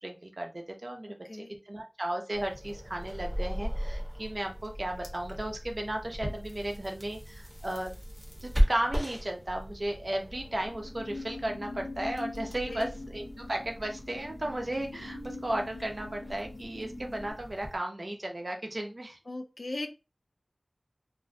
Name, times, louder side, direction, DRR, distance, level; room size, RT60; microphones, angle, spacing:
voice 1, 0.0-8.0 8.4-19.2, right 1 dB, 50° right, 2 dB, 0.4 m, -35 dB
sound 1, 2.3-17.8, equal, 5° left, 0.8 m, -36 dB
sound 2, 10.3-17.3, left 2 dB, 85° left, 0.9 m, -43 dB
voice 2, 19.3-19.9, left 2 dB, 65° left, 5 dB, 0.3 m, -38 dB
2.4 x 2.0 x 2.5 m, 0.28 s
wide cardioid pair, 55°, 0 cm